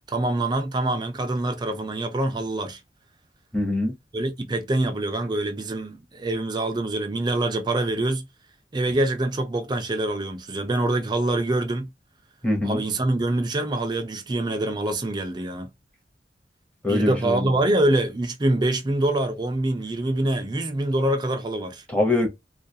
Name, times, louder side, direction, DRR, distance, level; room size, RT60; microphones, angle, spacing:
voice 1, 0.1-2.8 4.1-8.3 8.7-11.9 12.6-15.7 16.9-21.8, right 1 dB, 25° right, 0.4 m, -25 dB
voice 2, 3.5-3.9 12.4-12.8 16.8-17.5 21.9-22.3, left 2 dB, 5° left, 0.7 m, -23 dB
2.3 x 2.3 x 2.7 m
head